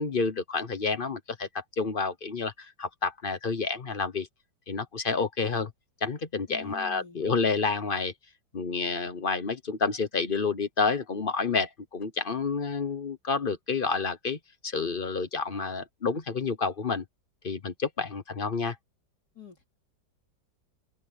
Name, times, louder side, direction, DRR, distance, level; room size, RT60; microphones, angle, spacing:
voice 1, 0.0-4.3 4.7-5.7 6.0-8.1 8.5-17.0 17.4-18.8, left 4 dB, 35° left, 1.0 m, -29 dB
voice 2, 6.5-7.2 19.4-19.8, left 10 dB, 60° left, 3.6 m, -46 dB
omnidirectional pair, 2.0 m